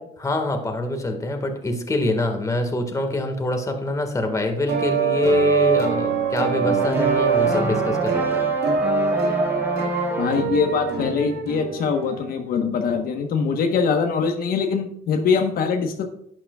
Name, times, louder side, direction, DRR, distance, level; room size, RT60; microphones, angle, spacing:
voice 1, 0.2-8.5, left 1 dB, 20° left, 5 dB, 1.7 m, -25 dB
sound 1, 4.7-12.3, right 5 dB, 80° right, 2.0 m, -23 dB
sound 2, 6.6-10.6, right 1 dB, 15° right, 1.3 m, -29 dB
voice 2, 10.2-16.0, left 5 dB, 60° left, 4 dB, 1.2 m, -23 dB
11.5 x 8.8 x 2.4 m, 0.77 s
cardioid pair, 110°, 17 cm